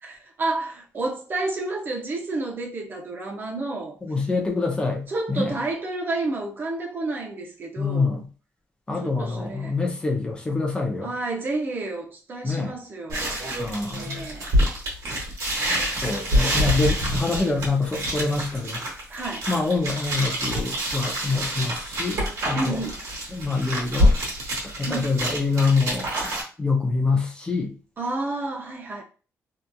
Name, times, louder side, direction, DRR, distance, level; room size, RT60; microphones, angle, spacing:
voice 1, 0.0-4.0 5.1-8.2 9.0-9.8 11.0-13.3 13.9-14.5 19.1-19.5 22.6-23.0 24.9-25.1 28.0-29.0, right 2 dB, 40° right, 0.5 m, -30 dB
voice 2, 4.1-5.5 7.8-8.2 8.9-11.1 12.4-12.7 13.6-14.2 16.0-18.8 19.5-22.8 23.3-24.1 24.8-26.1 26.6-27.7, left 3 dB, 15° left, 0.5 m, -25 dB
sound 1, 13.1-26.4, equal, 75° right, 1.1 m, -26 dB
2.8 x 2.4 x 2.2 m
cardioid pair, 135°, 5 cm